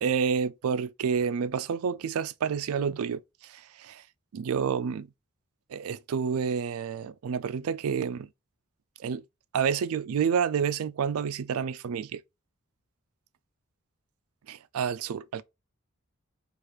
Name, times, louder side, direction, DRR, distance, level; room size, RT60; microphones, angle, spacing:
voice 1, 0.0-4.0 4.3-5.1 5.7-8.3 9.0-9.2 9.5-12.2 14.5-15.4, right 6 dB, 75° right, 0.4 m, -29 dB
4.7 x 2.5 x 3.1 m
head